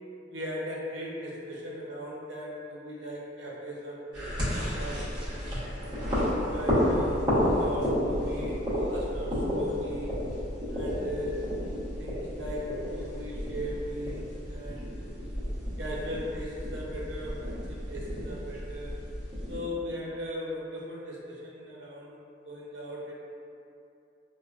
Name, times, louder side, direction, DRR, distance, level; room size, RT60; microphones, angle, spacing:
voice 1, 0.3-5.2 5.8-10.2 10.7-11.4 12.0-15.0 15.8-18.9 19.5-23.1, equal, 70° right, -4 dB, 0.7 m, -38 dB
sound 1, 4.1-19.6, equal, 25° right, 0.9 m, -31 dB
4.3 x 2.1 x 2.4 m, 2.6 s
head